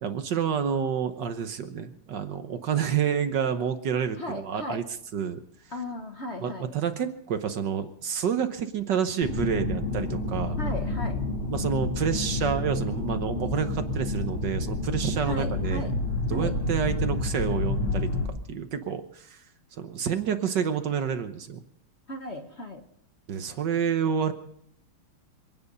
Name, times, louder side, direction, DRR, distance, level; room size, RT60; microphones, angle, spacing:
voice 1, 0.0-4.8 5.1-5.4 6.4-10.6 11.5-15.9 16.3-19.4 19.7-21.6 23.3-24.3, right 7 dB, 60° right, 9 dB, 1.5 m, -29 dB
voice 2, 4.2-4.8 5.7-6.7 10.6-11.2 15.2-15.9 16.3-16.5 22.1-22.8, left 1 dB, 35° left, 4 dB, 1.3 m, -36 dB
sound 1, 9.2-18.3, left 2 dB, 75° left, 4.6 m, -29 dB
27.0 x 9.6 x 5.4 m, 0.71 s
omnidirectional pair, 2.3 m